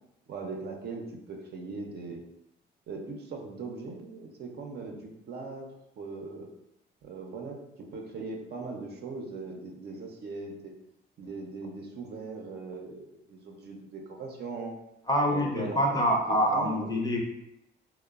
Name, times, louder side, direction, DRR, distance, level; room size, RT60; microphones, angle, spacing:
voice 1, 0.3-2.2 2.9-5.7 6.0-6.5 7.0-10.7 11.2-14.7 15.3-16.9, right 3 dB, 55° right, 2 dB, 0.5 m, -40 dB
voice 2, 15.1-17.2, equal, 20° left, 0 dB, 0.5 m, -26 dB
2.9 x 2.0 x 2.3 m, 0.85 s
cardioid pair, 90°, 20 cm